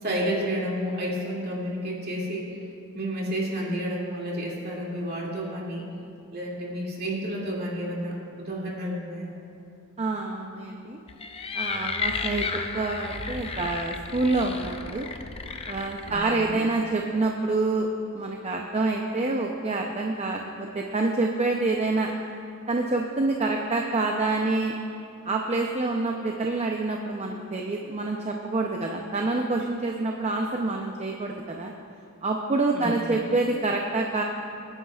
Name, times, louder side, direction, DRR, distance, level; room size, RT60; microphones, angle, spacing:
voice 1, 0.0-2.5 2.9-5.9 6.3-9.3 16.0-16.7 32.7-33.1, equal, 45° right, -4 dB, 2.4 m, -31 dB
voice 2, 10.0-11.0 11.5-15.1 15.7-17.9 18.1-22.1 22.7-24.8 25.3-31.7 32.2-34.2, right 3 dB, 30° right, 1 dB, 0.6 m, -27 dB
sound 1, 11.1-16.3, left 4 dB, 25° left, 0.5 m, -33 dB
22.5 x 9.9 x 2.4 m, 2.6 s
head